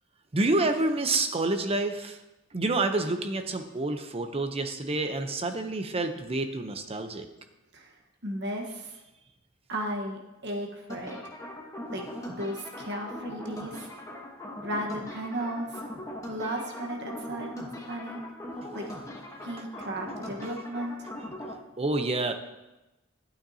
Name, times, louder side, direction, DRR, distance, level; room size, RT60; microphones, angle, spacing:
voice 1, 0.3-2.2 2.5-7.3 21.8-22.3, right 2 dB, 30° right, 6 dB, 0.7 m, -28 dB
voice 2, 8.2-9.0 9.7-11.2 11.9-13.9 14.6-15.8 16.3-18.2 18.7-18.8 19.4-20.9, right 1 dB, 60° right, 1 dB, 1.3 m, -35 dB
sound 1, 10.9-21.5, left 1 dB, 15° left, 1.2 m, -40 dB
12.0 x 8.8 x 2.8 m, 1.0 s
head